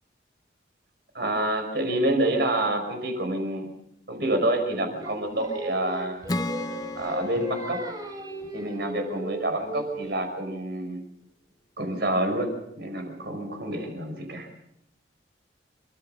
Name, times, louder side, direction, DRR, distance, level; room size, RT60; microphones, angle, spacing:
voice 1, 1.1-3.7 4.1-6.2 6.9-7.8 8.5-11.0 11.8-14.5, right 1 dB, 60° right, 5 dB, 5.6 m, -28 dB
Singing, 5.0-10.2, right 1 dB, 20° right, 3.5 m, -37 dB
Acoustic guitar / Strum, 6.3-9.7, left 1 dB, 20° left, 0.8 m, -36 dB
29.0 x 14.5 x 6.7 m, 0.80 s
head